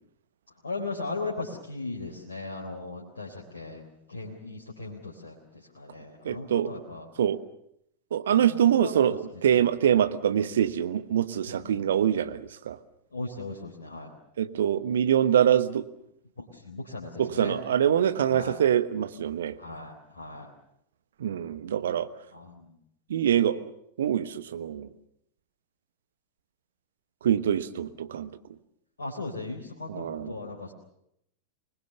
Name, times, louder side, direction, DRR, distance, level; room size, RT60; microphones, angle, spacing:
voice 1, 0.6-7.1 8.3-8.9 11.5-11.8 13.1-14.1 16.4-17.6 18.3-18.6 19.6-20.5 22.3-22.8 27.7-27.9 29.0-30.7, left 3 dB, 70° left, -2 dB, 3.8 m, -38 dB
voice 2, 6.2-6.8 7.2-7.4 8.1-9.1 9.4-12.8 14.4-15.9 17.2-19.6 21.2-22.1 23.1-23.7 24.0-24.9 27.2-28.3 29.9-30.4, right 9 dB, 65° right, 12 dB, 1.2 m, -24 dB
25.5 x 20.5 x 6.8 m, 0.75 s
figure-of-eight pair, 90°, 0 cm